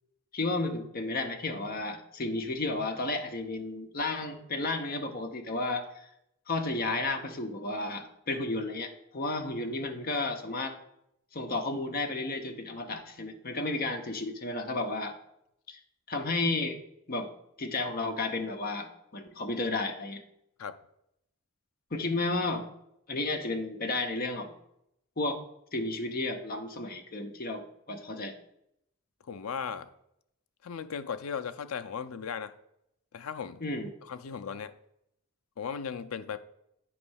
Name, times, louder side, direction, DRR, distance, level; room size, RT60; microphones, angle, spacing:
voice 1, 0.3-6.1 6.5-10.8 11.3-15.2 15.7-15.8 16.1-16.8 17.1-17.3 17.6-20.2 21.9-22.7 23.1-24.5 25.2-25.4 25.7-28.4 33.6-33.9, left 2 dB, 45° left, 5 dB, 0.8 m, -32 dB
voice 2, 29.3-29.9 30.6-32.5 33.1-33.6 34.1-34.7 35.6-36.4, left 6 dB, 90° left, 10 dB, 0.5 m, -36 dB
9.0 x 3.2 x 6.3 m, 0.78 s
head